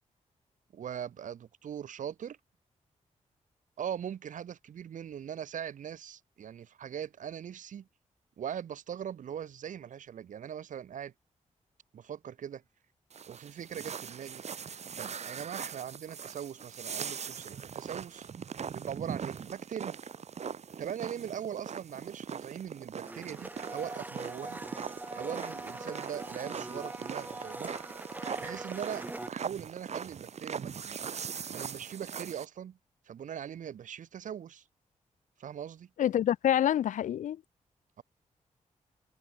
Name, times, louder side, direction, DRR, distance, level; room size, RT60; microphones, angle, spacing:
voice 1, 0.7-2.4 3.8-7.9 8.4-11.1 11.9-12.6 13.3-14.4 15.0-18.3 18.7-20.0 20.8-24.6 25.1-27.7 28.4-31.0 31.5-32.8 33.1-34.6 35.4-35.9 38.0-38.1, right 9 dB, 90° right, 1.6 m, -41 dB
sound 1, 13.1-32.4, right 7 dB, 60° right, 1.6 m, -41 dB
Domestic sounds home sounds, 23.0-29.3, right 2 dB, 15° right, 1.6 m, -42 dB
voice 2, 36.0-37.4, left 11 dB, 80° left, 0.4 m, -27 dB
wide cardioid pair, 120°, 13 cm